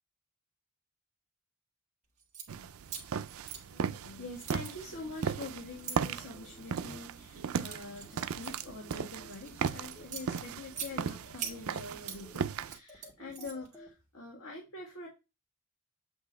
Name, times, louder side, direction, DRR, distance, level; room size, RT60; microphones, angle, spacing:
sound 1, 2.2-2.5 2.9-4.1 4.4-6.0 6.6-7.0 7.4-9.5 9.9-10.9 11.4-12.2 12.6-13.8, right 7 dB, 35° right, 1.6 m, -43 dB
sound 2, 2.5-12.8, right 7 dB, 75° right, 0.4 m, -37 dB
voice 1, 3.6-15.1, left 2 dB, 85° left, -2 dB, 1.7 m, -45 dB
george in da tekjunglematrix, 4.9-13.9, equal, 5° left, 1.4 m, -56 dB
8.0 x 2.8 x 4.6 m, 0.26 s
head